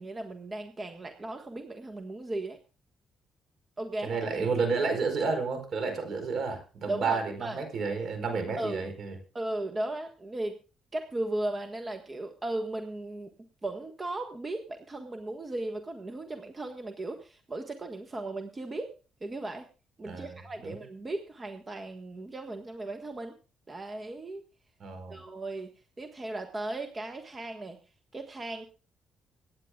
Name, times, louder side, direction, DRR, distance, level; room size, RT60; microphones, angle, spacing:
voice 1, 0.0-2.6 3.8-4.2 6.9-7.6 8.6-8.9 9.3-10.6 10.9-13.3 13.6-18.9 19.2-19.7 20.0-23.3 23.7-24.4 25.1-25.7 26.0-27.8 28.1-28.7, right 2 dB, 25° right, 5 dB, 1.5 m, -36 dB
voice 2, 4.0-9.1 20.0-20.8 24.8-25.2, right 4 dB, 60° right, 7 dB, 4.8 m, -31 dB
25.0 x 9.8 x 2.4 m, 0.34 s
cardioid pair, 90°, 0 cm